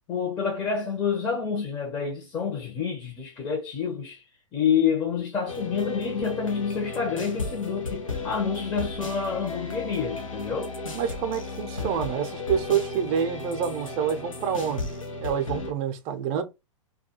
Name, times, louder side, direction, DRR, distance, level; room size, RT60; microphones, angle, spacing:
voice 1, 0.1-4.2 4.5-10.7, left 6 dB, 25° left, 0.7 m, -28 dB
sound 1, 5.5-15.7, left 3 dB, 85° left, 0.7 m, -35 dB
voice 2, 10.9-14.9 15.2-16.4, right 8 dB, 35° right, 0.6 m, -27 dB
2.3 x 2.3 x 2.8 m
figure-of-eight pair, 105°, 17 cm